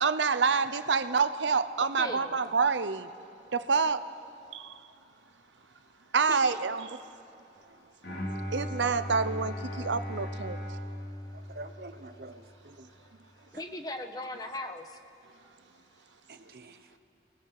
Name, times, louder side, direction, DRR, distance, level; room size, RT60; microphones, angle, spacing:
voice 1, 0.0-3.1 3.7-4.0 6.1-6.9 8.5-10.6, right 5 dB, 90° right, 12 dB, 0.8 m, -27 dB
voice 2, 1.8-2.4 6.3-6.6 10.5-11.6 12.4-15.0, left 1 dB, 20° left, 6 dB, 1.1 m, -41 dB
Bowed string instrument, 8.0-12.2, equal, 75° left, 3.5 m, -37 dB
voice 3, 11.3-12.9 16.3-16.8, right 2 dB, 55° right, 9 dB, 1.0 m, -47 dB
30.0 x 19.5 x 4.8 m, 2.8 s
head